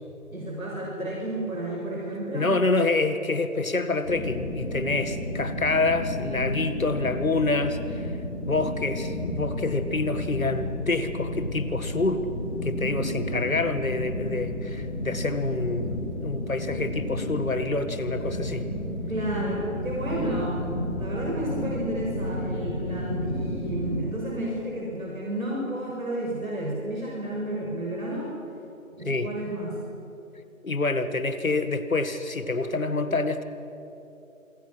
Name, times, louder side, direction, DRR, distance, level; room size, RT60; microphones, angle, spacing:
voice 1, 0.3-2.5 12.8-13.1 19.1-28.3 29.0-29.8, right 1 dB, 80° right, -3 dB, 6.4 m, -31 dB
voice 2, 2.1-8.2 8.5-12.2 12.6-18.7 29.1-29.3 30.6-33.4, left 3 dB, 75° left, 10 dB, 1.9 m, -27 dB
sound 1, 4.0-24.0, left 1 dB, 55° left, 7.8 m, -32 dB
27.0 x 22.0 x 6.1 m, 2.9 s
figure-of-eight pair, 180°, 41 cm